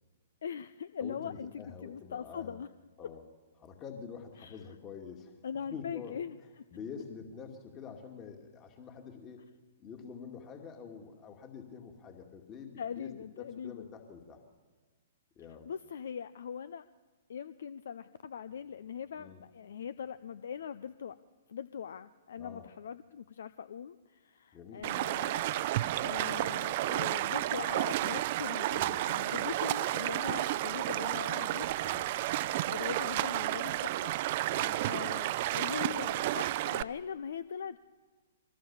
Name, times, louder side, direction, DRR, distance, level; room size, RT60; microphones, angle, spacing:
voice 1, 0.4-2.7 4.4-4.6 5.4-6.4 12.8-13.8 15.7-16.9 17.3-21.2 21.5-31.7 32.7-37.8, left 7 dB, 65° left, 15 dB, 0.6 m, -41 dB
voice 2, 1.0-2.6 3.0-3.2 3.6-5.3 5.7-6.2 6.7-9.5 9.8-14.4 15.4-15.7 19.2-19.4 22.4-22.7 24.5-24.9 28.7-29.1 31.8-32.1 34.4-34.8, left 6 dB, 30° left, 4 dB, 2.3 m, -47 dB
Stream, 24.8-36.8, right 15 dB, 45° right, 0.7 m, -32 dB
24.0 x 18.0 x 7.2 m, 1.4 s
figure-of-eight pair, 115°, 0 cm